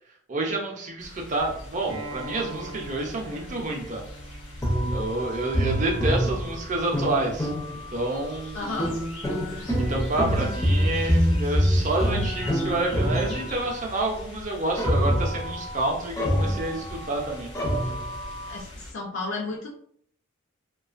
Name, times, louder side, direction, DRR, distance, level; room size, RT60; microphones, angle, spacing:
voice 1, 0.3-4.0 4.9-7.5 7.9-8.8 9.5-17.5, right 2 dB, 35° right, 0 dB, 0.5 m, -29 dB
sound 1, 1.0-18.9, left 1 dB, 90° left, 1.0 m, -43 dB
Acoustic guitar, 1.9-7.1, right 2 dB, 85° right, 0.6 m, -43 dB
sound 2, 4.6-8.1 8.8-13.9 14.8-17.2 17.5-18.6, equal, 15° left, 0.4 m, -26 dB
voice 2, 8.5-9.0 17.8-17.9 18.5-19.8, left 3 dB, 70° left, -1 dB, 0.5 m, -33 dB
2.3 x 2.3 x 2.4 m, 0.62 s
head